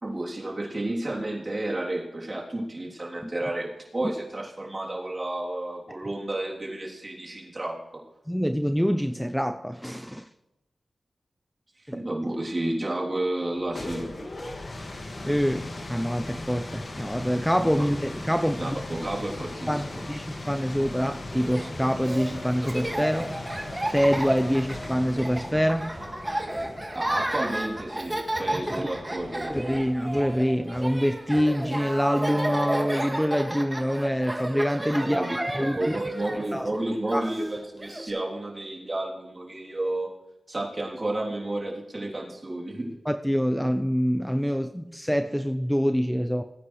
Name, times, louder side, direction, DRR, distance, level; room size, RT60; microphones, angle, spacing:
voice 1, 0.0-8.0 11.8-14.1 18.6-20.0 26.9-29.6 35.0-35.4 35.8-40.1 40.5-43.0, right 1 dB, 40° right, -3 dB, 3.3 m, -31 dB
voice 2, 8.3-10.3 11.9-12.0 15.2-18.8 19.7-23.4 23.9-25.9 28.5-28.9 29.5-36.0 36.5-36.7 37.1-37.3 43.1-46.4, equal, 5° left, 7 dB, 0.6 m, -26 dB
sound 1, 13.5-30.2, left 2 dB, 55° left, 2.0 m, -39 dB
Laughter, 21.3-38.1, right 1 dB, 20° right, 2.1 m, -32 dB
19.0 x 9.5 x 3.3 m, 0.95 s
cardioid pair, 40°, 0 cm